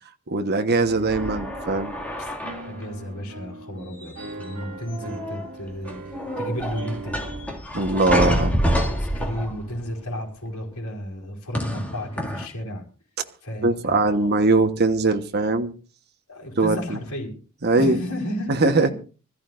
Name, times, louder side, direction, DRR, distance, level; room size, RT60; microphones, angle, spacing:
voice 1, 0.3-1.9 7.7-8.6 13.6-15.7 16.6-17.0 17.6-18.0 18.5-18.9, right 3 dB, 50° right, 1.3 m, -21 dB
Piano, 0.8-7.6, right 2 dB, 75° right, 2.3 m, -40 dB
sound 1, 1.1-2.8 4.0-4.6 4.9-5.5 5.9-9.8 11.5-12.5, equal, 5° left, 2.3 m, -27 dB
voice 2, 2.7-7.2 8.2-12.8 13.4-14.3 16.3-17.4 17.7-18.9, equal, 75° left, 4.5 m, -33 dB
25.0 x 14.5 x 2.6 m
head